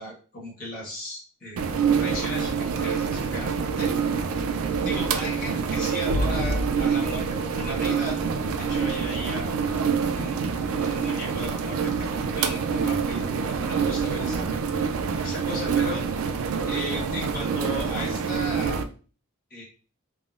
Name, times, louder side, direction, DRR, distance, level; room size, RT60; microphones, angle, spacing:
voice 1, 0.0-3.9 4.8-8.2 8.6-9.5 10.0-10.4 10.7-14.5 15.2-16.1 16.7-18.9 19.5-19.6, left 1 dB, 40° left, -3 dB, 1.1 m, -36 dB
sound 1, 1.6-18.8, right 5 dB, 75° right, 0.3 m, -26 dB
3.5 x 2.0 x 2.4 m, 0.38 s
head